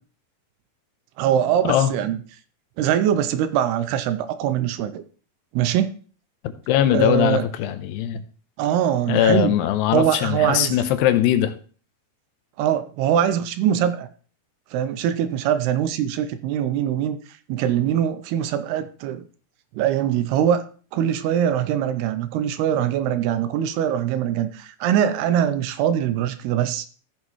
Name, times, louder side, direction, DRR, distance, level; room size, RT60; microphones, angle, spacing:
voice 1, 1.2-2.2 2.8-5.0 5.5-5.9 6.9-7.5 8.6-9.5 9.9-10.8 12.6-14.1 14.7-17.2 17.5-19.2 19.8-20.6 20.9-26.9, right 10 dB, 80° right, 10 dB, 2.5 m, -22 dB
voice 2, 6.7-8.2 9.1-11.5, left 11 dB, 90° left, 10 dB, 2.8 m, -20 dB
14.5 x 6.4 x 3.0 m, 0.40 s
omnidirectional pair, 4.8 m